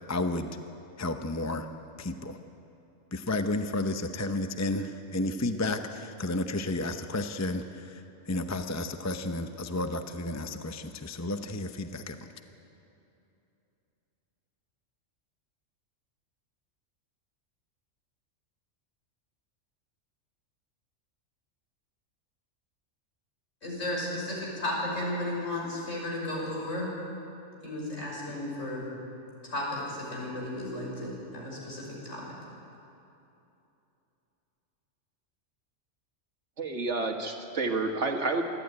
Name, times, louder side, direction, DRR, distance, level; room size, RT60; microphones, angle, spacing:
voice 1, 0.1-0.5 1.0-1.7 2.0-2.4 3.1-12.3, left 2 dB, 15° left, 7 dB, 0.6 m, -32 dB
voice 2, 23.6-26.9 27.6-28.9 29.4-32.3, left 1 dB, 70° left, -3 dB, 6.2 m, -34 dB
voice 3, 36.6-38.4, right 3 dB, 65° right, 3 dB, 1.9 m, -29 dB
27.0 x 12.0 x 9.5 m, 2.8 s
omnidirectional pair, 1.3 m